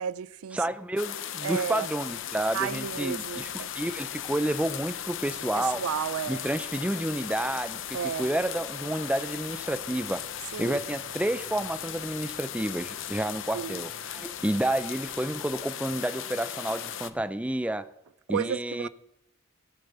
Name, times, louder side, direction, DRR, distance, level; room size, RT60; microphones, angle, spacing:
voice 1, 0.0-0.6 1.4-1.9 2.5-3.7 5.5-6.4 7.9-8.3 10.5-10.8 13.5-13.8 18.3-18.9, right 8 dB, 85° right, 0.4 m, -32 dB
voice 2, 0.5-5.8 6.3-10.3 10.6-17.9 18.3-18.9, right 1 dB, 5° right, 0.4 m, -30 dB
sound 1, 1.0-17.1, left 10 dB, 60° left, 0.7 m, -37 dB
sound 2, 2.0-15.5, left 1 dB, 45° left, 3.6 m, -57 dB
17.0 x 6.9 x 6.8 m
head